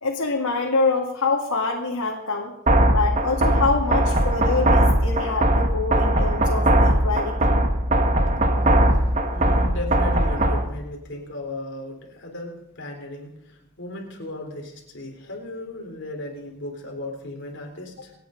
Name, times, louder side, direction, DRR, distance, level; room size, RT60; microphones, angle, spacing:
voice 1, 0.0-2.5 2.9-7.6 7.9-8.0, left 4 dB, 90° left, -1 dB, 2.2 m, -25 dB
sound 1, 2.7-10.7, right 1 dB, 35° right, 1.6 m, -20 dB
voice 2, 9.1-18.1, left 1 dB, 55° left, 1 dB, 3.8 m, -36 dB
27.5 x 9.4 x 5.2 m, 0.86 s
head